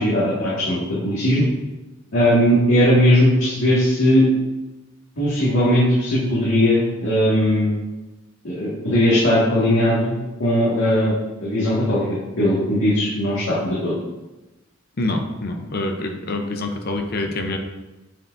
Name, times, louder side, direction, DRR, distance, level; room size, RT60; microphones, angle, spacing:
voice 1, 0.0-1.5 2.1-4.3 5.2-7.8 8.4-10.1 10.4-11.1 11.4-12.1 12.4-13.9, equal, 85° left, -10 dB, 2.0 m, -18 dB
voice 2, 15.0-17.6, left 2 dB, 50° left, 4 dB, 0.7 m, -26 dB
8.7 x 4.8 x 2.6 m, 1.1 s
head